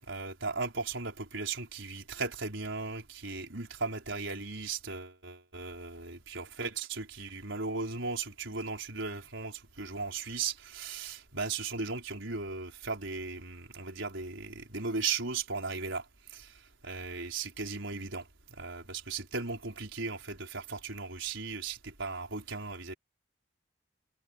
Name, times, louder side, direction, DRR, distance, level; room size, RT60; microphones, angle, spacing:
voice 1, 0.1-16.0 16.3-16.5 16.8-18.3 18.6-22.9, right 4 dB, 75° right, 4.3 m, -37 dB
head